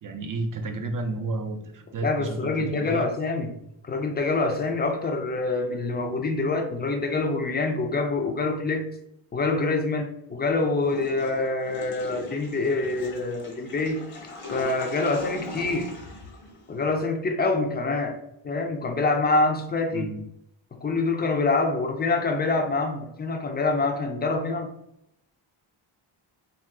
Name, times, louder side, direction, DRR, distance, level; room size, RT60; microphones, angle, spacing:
voice 1, 0.0-3.1 19.9-20.2, right 2 dB, 45° right, 6 dB, 0.4 m, -32 dB
voice 2, 2.0-3.5 3.8-8.9 9.3-14.1 14.5-15.9 16.7-18.2 18.4-20.1 20.8-24.7, left 3 dB, 20° left, 4 dB, 0.4 m, -26 dB
Water / Toilet flush, 10.8-17.0, left 1 dB, 80° left, 0.9 m, -40 dB
2.6 x 2.3 x 3.4 m, 0.78 s
wide cardioid pair, 100°, 50 cm